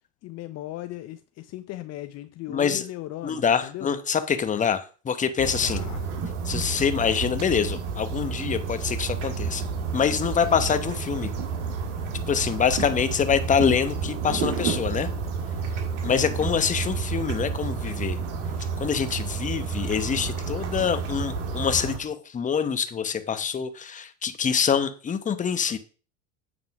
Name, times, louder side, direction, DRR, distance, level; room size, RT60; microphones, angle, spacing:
voice 1, 0.2-3.9 5.6-6.0 10.5-10.7 16.0-16.5, left 15 dB, 50° left, 0.6 m, -37 dB
voice 2, 2.5-2.9 3.2-5.8 6.4-9.6 9.9-11.3 12.3-15.1 16.0-18.2 18.8-25.8, left 7 dB, 20° left, 0.8 m, -25 dB
sound 1, 5.4-22.0, right 5 dB, 85° right, 1.8 m, -30 dB
7.8 x 3.7 x 5.9 m
supercardioid pair, 105°, 34 cm